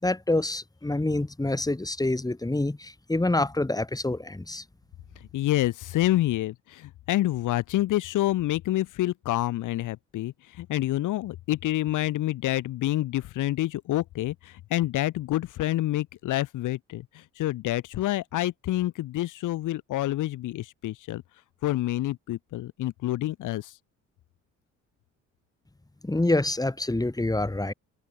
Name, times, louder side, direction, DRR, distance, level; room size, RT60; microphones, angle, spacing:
voice 1, 0.0-4.6 26.0-27.7, left 2 dB, 10° left, 5.4 m, -26 dB
voice 2, 5.3-17.0 17.4-21.2 21.6-23.7, left 15 dB, 85° left, 2.4 m, -28 dB
cardioid pair, 90°, 30 cm